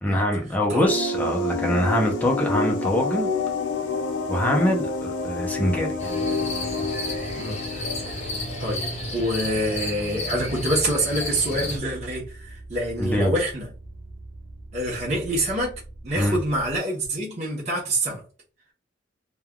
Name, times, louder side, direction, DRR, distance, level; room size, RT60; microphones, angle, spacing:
voice 1, 0.0-3.3 4.3-5.9 13.0-13.3 16.2-16.4, left 1 dB, 10° left, 0.6 m, -23 dB
sound 1, 0.8-9.2, left 2 dB, 70° left, 0.6 m, -28 dB
sound 2, 2.0-16.8, right 2 dB, 65° right, 0.9 m, -43 dB
sound 3, 6.0-11.8, left 1 dB, 35° left, 0.8 m, -32 dB
voice 2, 8.6-13.7 14.7-18.2, right 1 dB, 35° right, 0.9 m, -26 dB
3.2 x 2.3 x 2.3 m
head